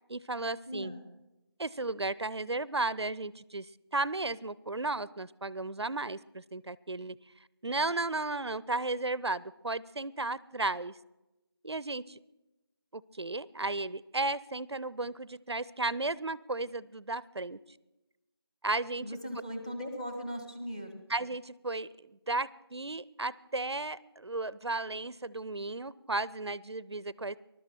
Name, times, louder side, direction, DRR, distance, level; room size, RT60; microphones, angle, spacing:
voice 1, 0.1-0.9 1.6-7.2 7.6-10.9 11.6-12.2 12.9-17.6 18.6-19.1 21.1-27.4, right 2 dB, 85° right, 20 dB, 0.6 m, -34 dB
voice 2, 0.7-1.0 19.0-21.0, equal, 15° left, 6 dB, 1.1 m, -39 dB
20.5 x 12.0 x 4.4 m, 0.98 s
figure-of-eight pair, 175°, 14 cm